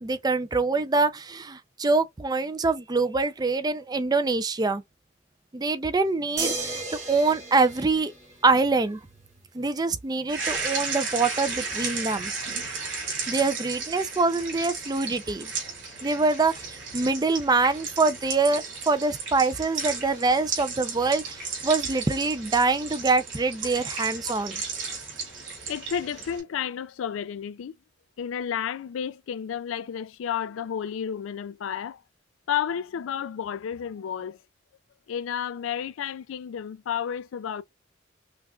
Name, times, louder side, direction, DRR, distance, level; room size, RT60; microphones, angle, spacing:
voice 1, 0.0-4.8 5.5-6.8 7.1-8.1 8.4-9.0 9.5-12.3 13.3-15.5 16.0-24.5, right 3 dB, 20° right, 0.4 m, -25 dB
sound 1, 6.4-8.8 10.6-10.7, right 3 dB, 35° right, 2.2 m, -34 dB
sound 2, 10.3-26.4, right 4 dB, 75° right, 2.7 m, -34 dB
voice 2, 25.7-27.7 28.2-32.0 32.5-34.4 35.1-37.6, left 8 dB, 80° left, 0.3 m, -31 dB
5.7 x 2.4 x 2.3 m
head